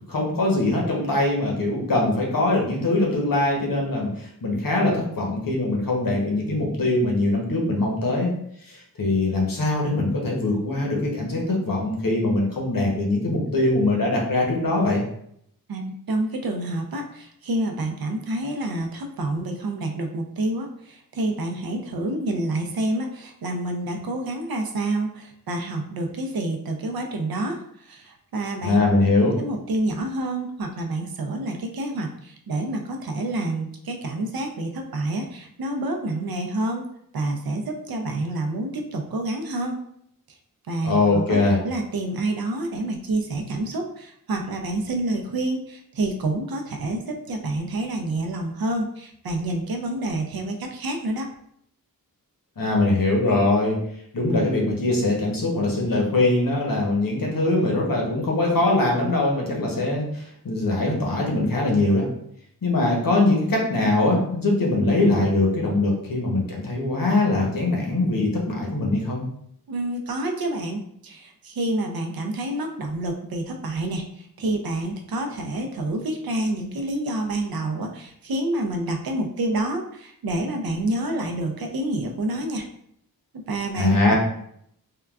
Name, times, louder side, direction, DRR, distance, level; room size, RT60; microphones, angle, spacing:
voice 1, 0.1-4.1 4.4-8.3 8.7-15.0 28.6-29.3 40.8-41.6 52.6-53.8 54.1-62.1 62.6-69.2 83.7-84.1, left 2 dB, 65° left, -1 dB, 0.9 m, -22 dB
voice 2, 15.7-28.8 29.2-36.9 37.1-39.8 40.7-51.3 69.7-82.6 83.3-84.1, right 1 dB, 75° right, 3 dB, 0.5 m, -28 dB
3.7 x 2.2 x 2.3 m, 0.70 s
wide cardioid pair, 95°, 36 cm